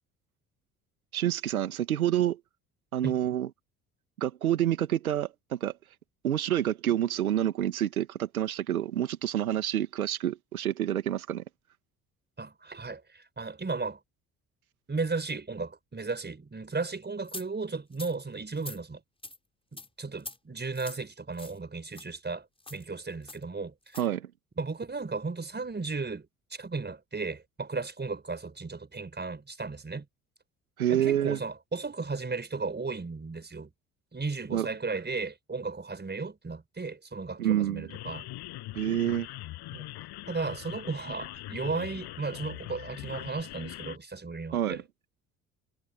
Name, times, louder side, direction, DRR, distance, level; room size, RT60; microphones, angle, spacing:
voice 1, 1.1-2.4 2.9-3.5 4.2-5.7 6.2-11.4 24.0-24.3 30.8-31.4 34.5-34.7 37.4-37.9 38.7-39.3 44.5-44.8, right 11 dB, 85° right, 2.2 m, -28 dB
voice 2, 12.4-14.0 14.9-19.0 19.7-22.5 22.7-24.0 24.6-30.1 30.9-33.7 34.1-38.3 39.7-39.9 40.3-44.8, right 4 dB, 25° right, 5.5 m, -35 dB
sound 1, 17.3-17.5 17.9-18.1 18.6-18.8 19.2-19.4 19.8-19.9 20.2-20.4 20.7-21.0 21.4-21.6 21.9-22.1 22.6-22.8 23.3-23.4 23.9-24.1, left 2 dB, 15° left, 6.0 m, -43 dB
sound 2, 37.9-44.0, left 17 dB, 65° left, 7.1 m, -42 dB
figure-of-eight pair, 50°, 42 cm